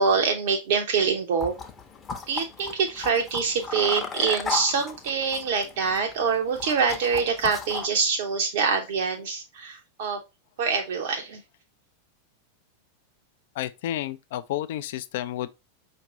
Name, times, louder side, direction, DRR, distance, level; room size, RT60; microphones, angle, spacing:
voice 1, 0.0-1.5 2.3-10.2 10.6-11.4, right 5 dB, 55° right, 0.6 m, -25 dB
sound 1, 1.4-7.9, left 5 dB, 20° left, 0.7 m, -36 dB
voice 2, 13.6-15.5, left 13 dB, 55° left, 0.4 m, -31 dB
5.1 x 2.6 x 2.9 m
figure-of-eight pair, 90°, 0 cm